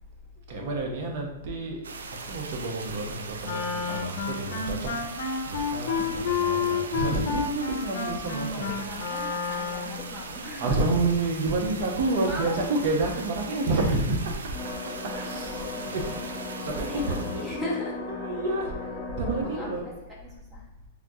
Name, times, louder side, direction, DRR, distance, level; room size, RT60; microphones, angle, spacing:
voice 1, 0.5-1.8 2.3-5.1 5.4-8.8 10.6-14.3 15.1-16.2 16.5-17.1 18.1-19.8, right 2 dB, 55° right, 1 dB, 0.8 m, -29 dB
sound 1, 1.8-17.6, right 4 dB, 85° right, 0.3 m, -40 dB
Wind instrument woodwind instrument, 3.4-10.0, left 5 dB, 65° left, 0.5 m, -30 dB
voice 2, 6.0-6.4 8.5-10.8 12.2-12.6 14.6-14.7 15.6-18.0 19.2-19.7 20.2-20.9, left 1 dB, 15° right, -4 dB, 0.9 m, -38 dB
sound 2, 14.5-19.7, left 3 dB, 30° left, 0.8 m, -37 dB
3.6 x 2.3 x 2.7 m, 1.1 s
hypercardioid pair, 120°, 0 cm